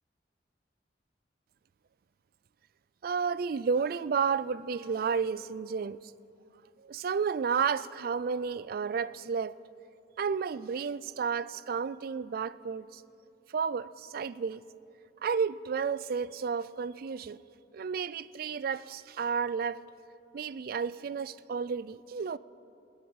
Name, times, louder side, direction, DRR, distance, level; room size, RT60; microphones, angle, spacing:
voice 1, 3.0-6.0 6.8-9.6 10.2-13.0 13.5-14.6 15.2-17.4 17.7-19.8 20.3-22.4, right 6 dB, 55° right, 0.3 m, -32 dB
20.0 x 8.7 x 7.1 m
head